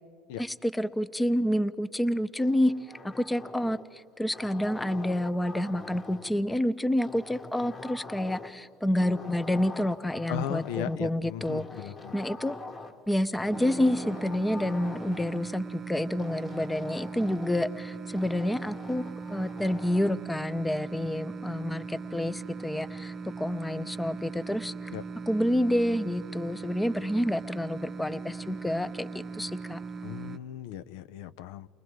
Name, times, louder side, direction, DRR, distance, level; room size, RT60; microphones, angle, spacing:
voice 1, 0.4-2.7 3.0-11.7 12.1-12.6 13.1-19.0 19.3-24.9 25.3-29.8, left 1 dB, 10° left, 14 dB, 0.6 m, -28 dB
sound 1, 2.4-3.9 4.3-6.4 7.0-8.7 9.0-11.0 11.4-13.0 13.4-15.4 16.2-17.7 18.1-20.2, left 3 dB, 35° left, 1.5 m, -44 dB
voice 2, 10.3-12.1 24.9-25.0 30.0-31.7, left 11 dB, 80° left, 14 dB, 0.4 m, -37 dB
sound 2, 13.5-30.4, right 4 dB, 35° right, 0.7 m, -39 dB
29.5 x 20.5 x 4.7 m, 2.3 s
supercardioid pair, 100°, 0 cm